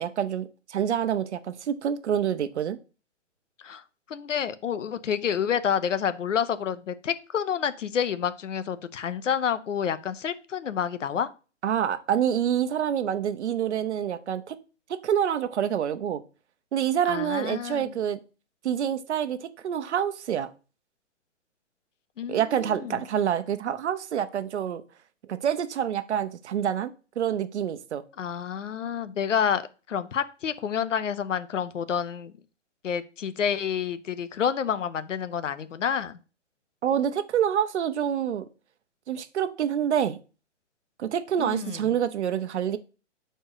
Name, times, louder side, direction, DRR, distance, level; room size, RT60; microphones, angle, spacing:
voice 1, 0.0-2.8 11.6-14.6 14.9-16.2 16.7-18.2 18.6-20.5 22.3-24.8 25.3-28.0 36.8-38.5 39.1-40.2 41.0-42.8, right 9 dB, 65° right, 0.9 m, -27 dB
voice 2, 4.1-11.3 17.1-17.9 22.2-23.0 28.2-29.6 29.9-32.3 32.8-36.2 41.4-41.8, left 8 dB, 85° left, 0.8 m, -29 dB
6.3 x 4.5 x 4.8 m
hypercardioid pair, 145°, 36 cm